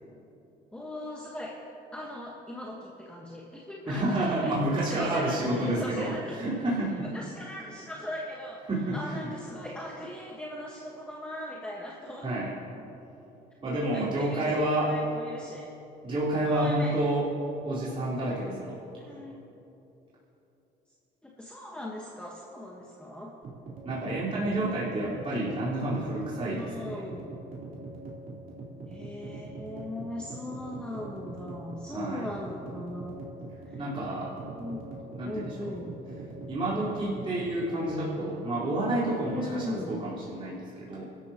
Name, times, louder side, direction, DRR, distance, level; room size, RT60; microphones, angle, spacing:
voice 1, 0.7-1.6 1.9-6.4 7.0-8.6 8.9-12.4 13.9-15.7 16.4-17.0 19.0-19.4 21.2-23.3 26.5-27.2 28.9-33.3 33.7-33.8 34.5-34.9 35.2-36.0 36.7-37.3 39.3-39.9, left 1 dB, 5° left, -2 dB, 1.4 m, -39 dB
voice 2, 3.9-7.1 8.7-9.1 12.2-12.5 13.6-14.9 16.0-17.3 17.6-18.8 23.8-27.0 31.9-32.3 33.8-34.3 35.2-35.7 36.5-41.0, right 1 dB, 30° right, -9 dB, 4.3 m, -29 dB
sound 1, 23.4-37.7, right 2 dB, 55° right, 3.9 m, -42 dB
28.0 x 13.5 x 3.0 m, 3.0 s
cardioid pair, 110°, 17 cm